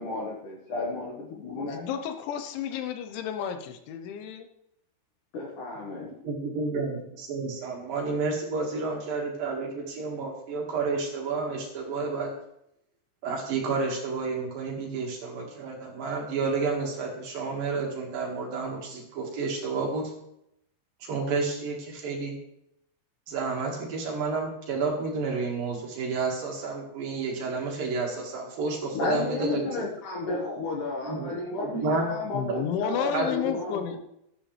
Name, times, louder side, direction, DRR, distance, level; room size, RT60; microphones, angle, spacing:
voice 1, 0.0-2.0 5.3-6.1 28.9-34.0, left 2 dB, 60° left, -2 dB, 2.4 m, -32 dB
voice 2, 1.7-4.4 32.3-34.0, left 8 dB, 85° left, 8 dB, 3.3 m, -31 dB
voice 3, 6.2-12.3 13.2-20.1 21.0-22.3 23.3-29.6 31.0-31.3 31.6-32.1 33.1-33.5, right 4 dB, 60° right, -1 dB, 3.2 m, -30 dB
13.0 x 11.5 x 3.3 m, 0.78 s
omnidirectional pair, 5.3 m